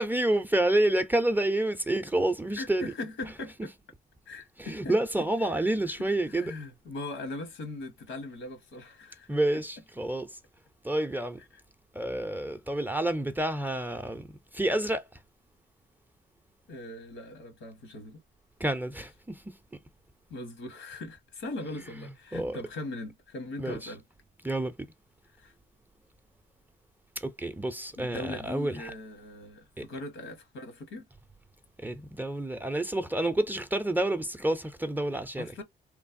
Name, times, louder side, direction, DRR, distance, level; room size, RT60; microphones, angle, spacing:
voice 1, 0.0-2.9 4.6-6.5 9.3-10.4 10.8-11.4 11.9-15.1 18.6-19.6 22.3-22.6 23.6-23.9 24.4-24.7 27.2-28.9 29.8-29.9 31.8-35.6, right 1 dB, 10° right, 0.4 m, -29 dB
voice 2, 2.6-3.7 4.3-5.7 6.3-9.3 16.7-18.2 20.3-24.0 25.4-25.5 28.0-31.0 35.4-35.6, left 2 dB, 80° left, 1.1 m, -40 dB
3.1 x 2.0 x 2.5 m
cardioid pair, 90°, 20 cm